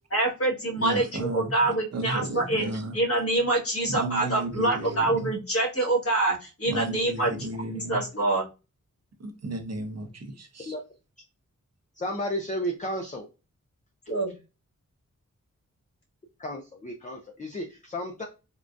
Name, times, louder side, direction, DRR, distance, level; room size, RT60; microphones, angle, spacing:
voice 1, 0.1-7.3 7.6-8.5 14.1-14.3, right 2 dB, 45° left, 1.4 m, -26 dB
voice 2, 0.8-2.9 3.9-5.3 6.7-8.0 9.2-10.8, right 2 dB, 55° right, 0.7 m, -34 dB
voice 3, 12.0-13.3 16.4-18.3, equal, 25° left, 0.5 m, -33 dB
3.7 x 2.2 x 2.5 m
wide cardioid pair, 90°, 31 cm